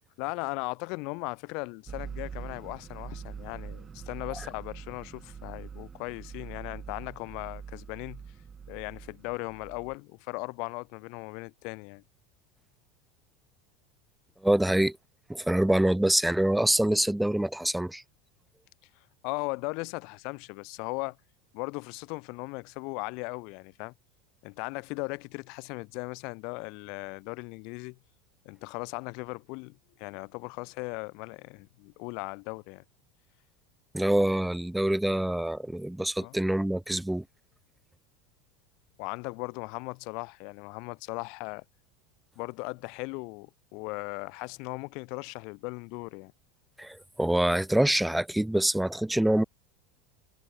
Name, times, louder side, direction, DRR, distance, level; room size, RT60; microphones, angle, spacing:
voice 1, 0.2-8.2 8.7-12.0 19.2-21.2 21.5-23.9 24.4-28.0 28.4-32.8 36.2-36.4 39.0-41.6 42.4-46.3, left 31 dB, 50° left, 5.7 m, -38 dB
sound 1, 1.9-9.9, right 6 dB, 20° right, 7.9 m, -43 dB
voice 2, 14.4-15.0 15.3-18.0 33.9-37.2 46.8-49.4, right 1 dB, ahead, 0.8 m, -25 dB
supercardioid pair, 160°, 0 cm